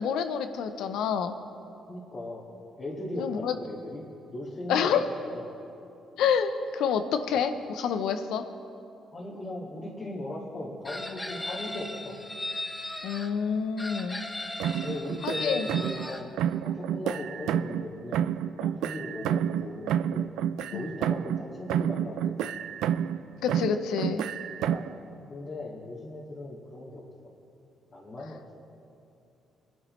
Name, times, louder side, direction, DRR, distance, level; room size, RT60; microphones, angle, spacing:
voice 1, 0.0-1.3 3.2-3.6 4.7-5.0 6.2-8.5 13.0-14.2 14.7-14.9 15.2-15.7 20.7-20.9 23.4-24.3, left 7 dB, 85° left, 9 dB, 0.7 m, -28 dB
voice 2, 1.9-2.5 2.8-4.0 4.3-5.5 9.1-12.2 14.8-16.3 16.6-18.3 18.6-20.3 20.7-22.5 24.6-24.9 25.3-27.0 27.9-28.4, left 1 dB, 40° left, -5 dB, 2.1 m, -38 dB
Chicken rooster, 10.9-13.3 13.8-16.2, left 1 dB, 15° left, 1.1 m, -37 dB
sound 1, 14.6-16.1 16.4-17.9 18.1-21.4 21.7-23.2 23.5-25.0, right 9 dB, 90° right, 0.3 m, -29 dB
21.5 x 11.0 x 3.2 m, 2.7 s
cardioid pair, 90°, 0 cm